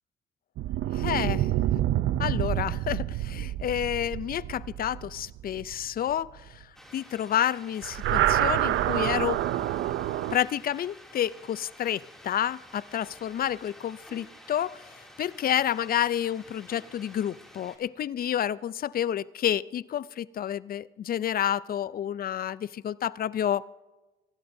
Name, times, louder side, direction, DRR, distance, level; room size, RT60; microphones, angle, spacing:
sound 1, 0.6-6.1 7.8-10.4, right 12 dB, 75° right, 0.5 m, -27 dB
voice 1, 0.9-1.5 2.2-6.4 6.9-9.4 10.3-14.8 15.2-23.6, left 10 dB, 50° left, 19 dB, 0.4 m, -29 dB
sound 2, 6.7-17.8, equal, ahead, 2.7 m, -51 dB
25.5 x 12.5 x 2.7 m, 1.2 s
cardioid pair, 90°, 20 cm